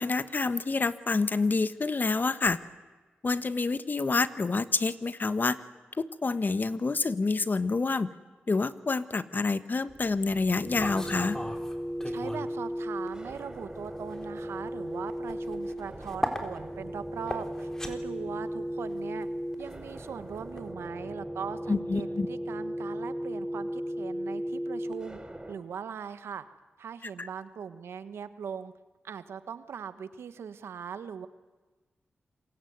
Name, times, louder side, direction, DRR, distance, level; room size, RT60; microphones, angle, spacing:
voice 1, 0.0-2.6 3.2-5.6 6.0-8.1 8.5-11.4 21.7-22.3 27.2-27.3, left 3 dB, 50° left, 13 dB, 1.5 m, -28 dB
sound 1, 9.9-25.5, equal, 20° right, 4.3 m, -36 dB
sound 2, 10.8-12.6 12.9-20.7, left 1 dB, 15° left, 4.0 m, -39 dB
voice 2, 12.0-19.3 19.6-25.2 25.5-26.4 26.8-28.7 29.0-31.3, right 7 dB, 90° right, 12 dB, 1.4 m, -40 dB
27.0 x 23.0 x 9.5 m, 1.3 s
cardioid pair, 50°, 4 cm